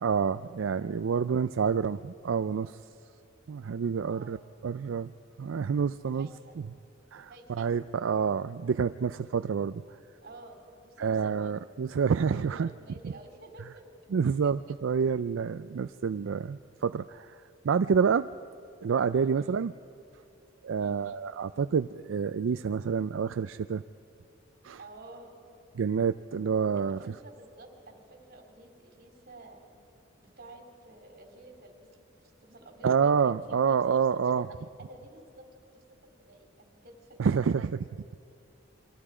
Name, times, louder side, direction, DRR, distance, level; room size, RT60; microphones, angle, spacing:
voice 1, 0.0-2.8 3.5-4.4 4.6-5.1 5.4-6.3 7.1-9.8 11.0-12.7 13.0-13.1 14.1-17.4 17.6-18.3 18.8-19.7 20.6-23.8 24.6-24.8 25.8-27.0 32.8-34.5 37.2-37.7, right 6 dB, 80° right, 12 dB, 0.4 m, -28 dB
voice 2, 4.1-4.4 6.0-6.6 7.2-7.9 10.2-11.5 12.3-13.8 14.2-14.6 19.1-19.4 20.8-21.0 24.7-25.3 26.8-29.6 30.2-32.0 32.4-33.8 34.3-34.4 34.8-35.5 35.7-35.8 36.2-37.6, right 2 dB, 55° right, 3 dB, 3.7 m, -51 dB
28.0 x 23.5 x 4.9 m, 2.7 s
head